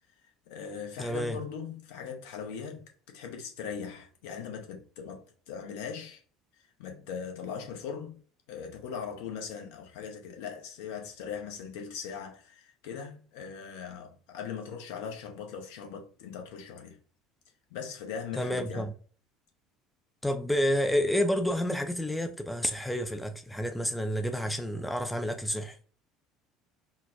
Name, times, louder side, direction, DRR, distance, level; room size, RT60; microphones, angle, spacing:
voice 1, 0.5-6.2 6.8-8.2 8.5-17.0 17.7-18.9, left 6 dB, 60° left, 0.6 m, -40 dB
voice 2, 1.0-1.4 18.4-18.9 20.2-25.8, equal, 5° left, 0.3 m, -29 dB
3.8 x 2.1 x 2.5 m
figure-of-eight pair, 65°, 0 cm